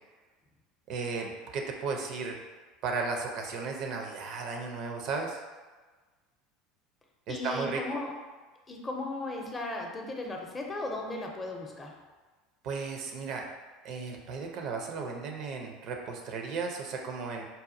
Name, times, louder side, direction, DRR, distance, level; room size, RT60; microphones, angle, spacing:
voice 1, 0.9-2.4 2.8-5.4 7.3-8.0 12.6-13.5 13.8-17.5, right 4 dB, 55° right, 2 dB, 0.4 m, -35 dB
voice 2, 7.3-8.1 8.7-12.0, left 2 dB, 25° left, 1 dB, 0.6 m, -36 dB
4.0 x 2.2 x 2.5 m, 1.3 s
hypercardioid pair, 75°, 0 cm